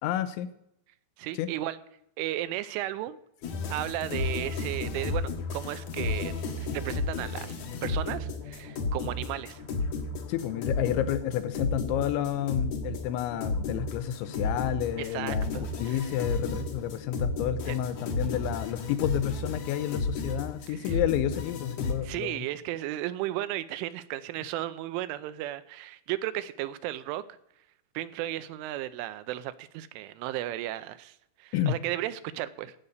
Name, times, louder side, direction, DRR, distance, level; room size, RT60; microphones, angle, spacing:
voice 1, 0.0-0.5 1.4-1.5 10.3-22.4 31.5-31.8, left 11 dB, 80° left, 12 dB, 3.0 m, -30 dB
voice 2, 1.2-1.8 2.2-3.2 3.7-6.3 6.6-9.6 15.0-16.0 17.7-17.8 20.7-21.0 22.0-27.2 27.9-32.8, right 14 dB, 85° right, 13 dB, 3.1 m, -34 dB
sound 1, 3.4-21.9, left 3 dB, 65° left, 1.8 m, -33 dB
15.5 x 5.3 x 8.2 m, 0.77 s
omnidirectional pair, 5.7 m